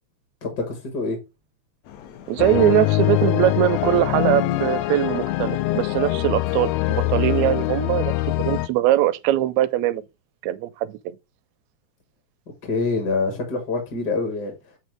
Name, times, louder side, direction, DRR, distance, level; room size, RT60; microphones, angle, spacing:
voice 1, 0.4-1.2 12.6-14.5, left 3 dB, 50° left, 1.3 m, -25 dB
sound 1, 1.8-7.2, left 9 dB, 70° left, 1.9 m, -44 dB
voice 2, 2.3-10.0 10.4-11.2, right 13 dB, 80° right, 1.7 m, -21 dB
sound 2, 2.4-8.7, left 16 dB, 85° left, 1.5 m, -23 dB
8.1 x 3.0 x 4.5 m
omnidirectional pair, 3.5 m